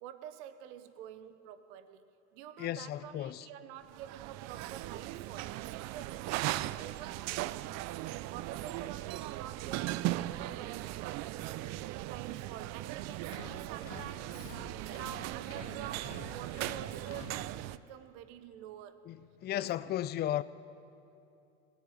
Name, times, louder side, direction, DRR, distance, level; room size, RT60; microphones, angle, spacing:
voice 1, 0.0-7.4 8.2-11.2 12.0-14.6 14.9-19.0 19.5-20.0, right 10 dB, 65° right, 0.9 m, -48 dB
voice 2, 2.6-3.5 19.1-19.2 19.4-20.4, left 12 dB, 30° left, 0.4 m, -34 dB
sound 1, 3.9-17.8, right 16 dB, 50° right, 0.4 m, -38 dB
sound 2, 13.2-18.0, left 11 dB, 60° left, 0.8 m, -50 dB
17.5 x 7.2 x 9.7 m
hypercardioid pair, 85°, 36 cm